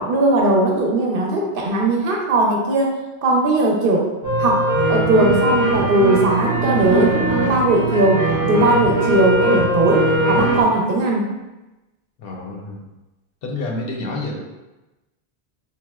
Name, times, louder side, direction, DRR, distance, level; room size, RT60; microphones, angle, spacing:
voice 1, 0.0-4.1 4.4-4.6 4.9-11.3, right 2 dB, 65° right, -1 dB, 0.7 m, -18 dB
sound 1, 4.2-10.6, right 1 dB, 25° right, 0.5 m, -20 dB
voice 2, 12.2-12.9 13.4-14.4, left 2 dB, 70° left, 0 dB, 0.7 m, -28 dB
4.2 x 2.0 x 2.2 m, 1.0 s
omnidirectional pair, 1.1 m